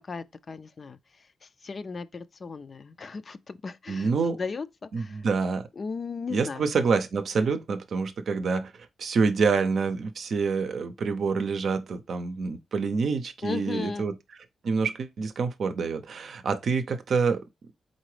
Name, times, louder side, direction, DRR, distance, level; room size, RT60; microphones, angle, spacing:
voice 1, 0.1-1.0 1.6-5.2 5.8-6.6 13.4-14.1, left 4 dB, 50° left, 0.4 m, -36 dB
voice 2, 3.9-4.4 4.9-5.7 6.3-8.7 9.0-14.1 14.6-17.4, right 5 dB, 65° right, 0.6 m, -27 dB
4.0 x 3.8 x 3.2 m
cardioid pair, 60°, 0 cm